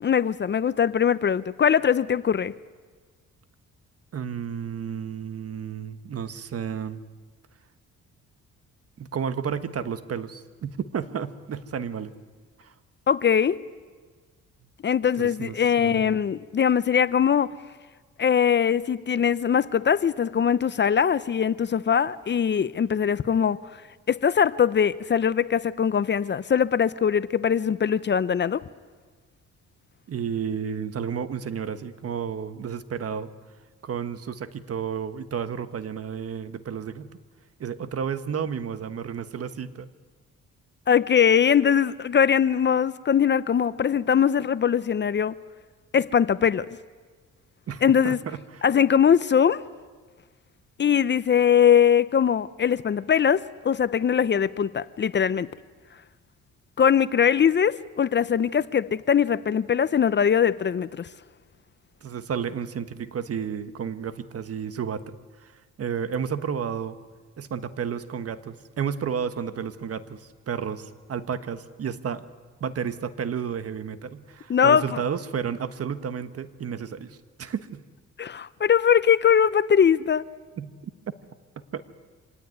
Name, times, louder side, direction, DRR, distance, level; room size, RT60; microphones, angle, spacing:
voice 1, 0.0-2.5 13.1-13.6 14.8-17.5 18.2-23.6 24.1-28.6 40.9-45.4 45.9-46.7 47.8-48.2 48.6-49.6 50.8-55.5 56.8-61.1 74.5-74.8 78.2-80.3, left 8 dB, 35° left, 0.6 m, -21 dB
voice 2, 4.1-7.0 9.0-12.1 12.6-12.7 15.2-16.2 30.1-33.3 33.8-37.2 37.6-39.9 47.7-48.6 62.0-65.5 65.8-67.0 67.4-72.3 72.6-77.8 80.6-80.7 81.7-81.8, right 7 dB, 50° right, 1.4 m, -32 dB
25.5 x 17.5 x 9.4 m
cardioid pair, 90°, 30 cm